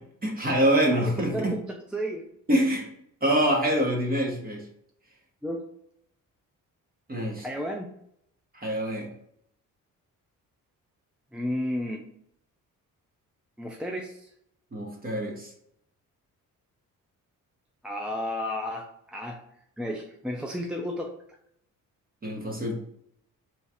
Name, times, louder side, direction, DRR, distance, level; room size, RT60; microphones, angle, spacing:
voice 1, 0.2-1.5 2.5-2.9 3.2-4.6 7.1-7.5 8.5-9.1 14.7-15.5 22.2-22.7, right 1 dB, 25° right, 0 dB, 1.2 m, -25 dB
voice 2, 0.9-1.6 1.9-2.2 5.4-5.6 7.4-7.9 11.3-12.1 13.6-14.3 17.8-19.4 19.8-21.1, equal, 5° right, 0 dB, 0.4 m, -32 dB
3.1 x 2.4 x 4.2 m, 0.73 s
cardioid pair, 95°, 34 cm